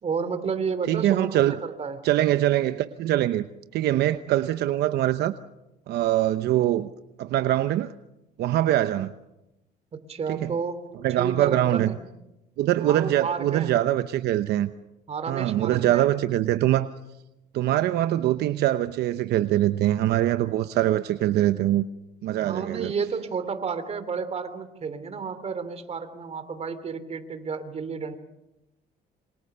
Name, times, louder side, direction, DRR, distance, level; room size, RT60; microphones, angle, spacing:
voice 1, 0.0-2.0 9.9-10.9 11.2-12.0 12.8-13.7 15.1-16.1 22.4-28.2, right 5 dB, 40° right, 11 dB, 3.0 m, -31 dB
voice 2, 0.9-1.5 2.0-3.5 3.7-5.3 5.9-6.9 7.2-7.9 8.4-9.1 10.3-10.5 11.0-11.9 12.6-14.7 15.3-16.9 17.5-21.8 22.2-22.9, right 13 dB, 75° right, 11 dB, 0.9 m, -23 dB
27.0 x 25.5 x 6.8 m, 0.94 s
cardioid pair, 110°, 17 cm